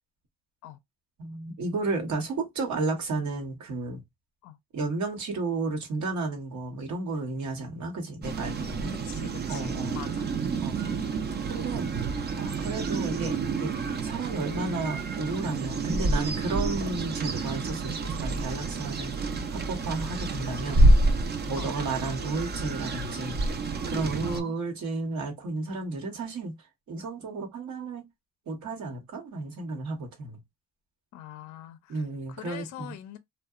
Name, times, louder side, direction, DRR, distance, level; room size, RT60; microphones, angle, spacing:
voice 1, 1.2-4.0 4.7-8.9 9.5-10.0 10.6-11.0 11.5-11.9 12.4-13.7 14.0-19.1 19.5-20.8 21.5-23.4 23.9-26.5 26.9-28.0 28.5-30.4 31.9-32.9, right 3 dB, 70° right, 1.0 m, -32 dB
sound 1, 8.2-24.4, right 2 dB, 35° right, 0.4 m, -28 dB
voice 2, 9.0-10.3 11.9-12.1 21.6-21.7 24.2-24.5 31.1-32.0 32.3-33.2, left 12 dB, 70° left, 0.4 m, -43 dB
2.7 x 2.1 x 2.3 m
cardioid pair, 90°, 30 cm